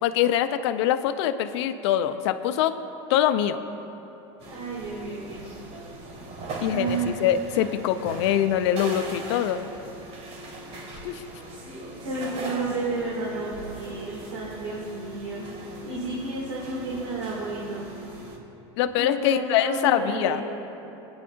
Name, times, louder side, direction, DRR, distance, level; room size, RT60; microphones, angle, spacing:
voice 1, 0.0-2.7 3.1-3.6 6.6-9.7 11.0-11.2 18.8-20.4, left 11 dB, 75° left, 11 dB, 0.6 m, -24 dB
sound 1, 4.4-18.4, right 2 dB, 50° right, 2.3 m, -40 dB
voice 2, 4.4-5.5 6.7-7.2 11.6-15.4 15.8-17.9 18.8-20.4, right 3 dB, 85° right, -5 dB, 2.3 m, -31 dB
21.0 x 9.6 x 2.6 m, 3.0 s
supercardioid pair, 105°, 14 cm